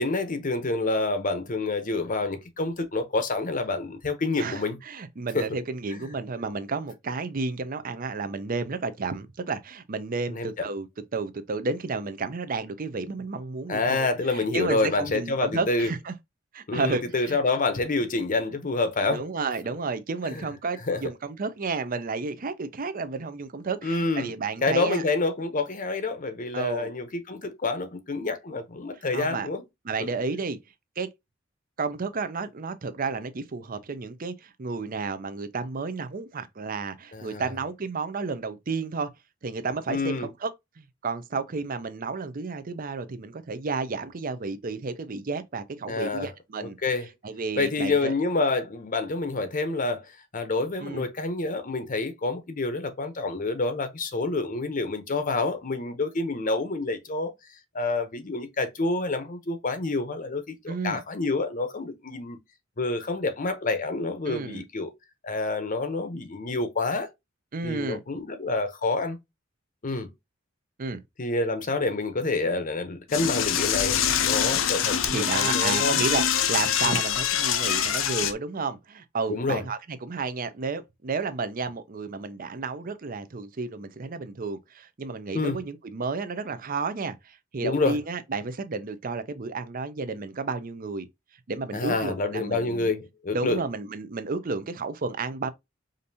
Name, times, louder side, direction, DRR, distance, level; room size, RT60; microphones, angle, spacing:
voice 1, 0.0-4.8 5.3-5.5 10.3-10.5 13.7-15.9 16.7-19.2 20.3-20.4 20.9-21.0 23.8-24.3 24.6-29.6 37.1-37.5 39.9-40.3 45.9-46.3 46.6-47.1 47.6-50.1 50.3-57.3 57.7-62.4 62.8-64.9 65.2-67.1 67.6-69.2 69.8-70.1 71.2-76.0 76.8-77.0 79.3-79.6 85.3-85.6 87.6-88.0 91.7-93.6, left 3 dB, 40° left, 0.8 m, -28 dB
voice 2, 4.4-10.9 11.1-16.1 16.5-17.4 19.1-25.0 26.5-26.9 29.1-29.5 29.8-30.6 31.0-31.1 31.8-39.1 39.4-40.5 40.8-46.8 47.2-48.1 50.8-51.1 60.7-61.0 64.3-64.6 67.5-68.0 70.8-71.0 75.1-91.1 91.5-92.9 93.3-95.5, right 4 dB, 45° right, 0.6 m, -32 dB
Door / Toilet flush, 73.1-78.3, left 9 dB, 75° left, 0.6 m, -24 dB
5.1 x 2.6 x 2.7 m
head